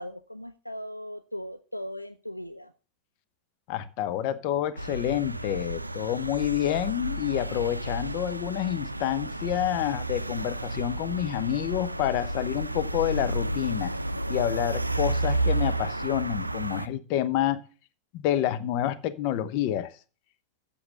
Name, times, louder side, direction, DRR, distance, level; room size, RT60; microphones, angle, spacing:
voice 1, 0.0-2.7, equal, 90° left, 11 dB, 0.4 m, -38 dB
voice 2, 3.7-13.9 14.3-17.6 18.1-19.9, left 12 dB, 45° left, 13 dB, 0.8 m, -28 dB
sound 1, 4.8-16.9, right 2 dB, 85° right, 0.4 m, -31 dB
8.0 x 7.0 x 6.5 m, 0.36 s
figure-of-eight pair, 90°, 0 cm